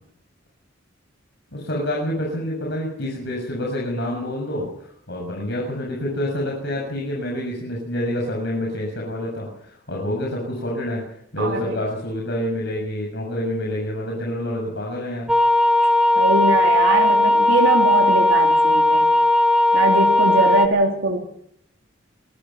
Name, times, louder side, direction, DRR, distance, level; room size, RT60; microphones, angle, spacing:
voice 1, 1.5-11.0 11.3-15.3, left 1 dB, 60° left, -1 dB, 7.3 m, -27 dB
voice 2, 11.4-11.8 16.1-19.1 19.7-21.2, right 2 dB, 75° right, 0 dB, 3.4 m, -21 dB
sound 1, 15.3-20.7, left 1 dB, 5° right, 2.1 m, -17 dB
26.0 x 20.5 x 5.9 m, 0.70 s
head